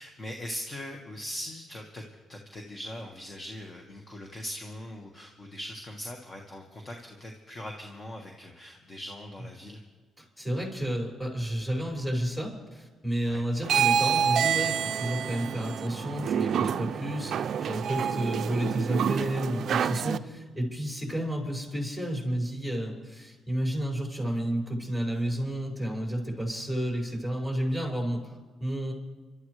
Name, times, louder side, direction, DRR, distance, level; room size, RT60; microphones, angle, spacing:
voice 1, 0.0-9.8 13.2-13.4, left 1 dB, 30° left, 2 dB, 1.6 m, -41 dB
voice 2, 10.2-28.9, equal, 10° left, -2 dB, 5.8 m, -31 dB
sound 1, 13.6-20.2, right 8 dB, 65° right, 0.4 m, -28 dB
28.5 x 12.5 x 3.3 m, 1.3 s
cardioid pair, 90°, 0 cm